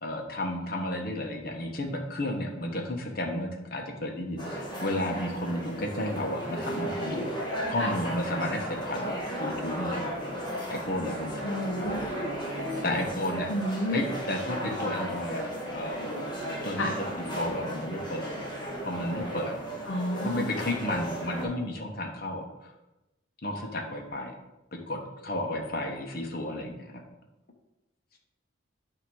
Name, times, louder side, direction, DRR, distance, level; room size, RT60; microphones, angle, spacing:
voice 1, 0.0-4.4 4.8-7.3 7.7-10.1 10.7-11.4 12.8-13.5 13.9-15.4 15.7-16.1 16.6-17.0 17.3-18.4 18.8-19.5 20.2-22.7 23.4-24.3 24.9-27.0, left 1 dB, 50° left, 2 dB, 1.2 m, -32 dB
sound 1, 4.4-21.4, equal, 25° left, 1.8 m, -35 dB
voice 2, 11.4-12.0 13.5-14.0 16.8-17.0 19.9-20.5, equal, 70° left, -1 dB, 0.9 m, -30 dB
8.7 x 3.0 x 6.3 m, 1.0 s
head